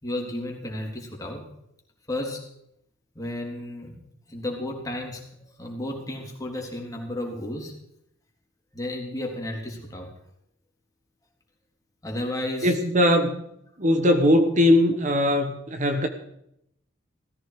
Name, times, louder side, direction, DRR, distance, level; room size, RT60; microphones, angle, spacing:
voice 1, 0.0-1.5 2.1-2.5 3.1-4.0 4.3-7.8 8.7-10.1 12.0-12.8, left 1 dB, 20° left, 0 dB, 3.4 m, -33 dB
voice 2, 12.6-13.4 13.8-16.1, left 1 dB, 40° right, 6 dB, 1.4 m, -20 dB
17.5 x 14.5 x 4.9 m, 0.76 s
head